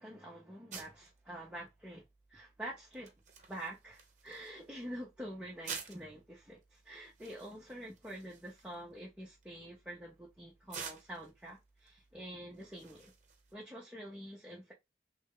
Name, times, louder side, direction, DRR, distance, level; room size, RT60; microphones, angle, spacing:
voice 1, 0.0-3.1 3.5-13.1 13.5-14.7, right 1 dB, 5° right, 0.8 m, -47 dB
sound 1, 0.7-13.5, right 6 dB, 45° right, 0.8 m, -52 dB
3.2 x 2.6 x 3.7 m
head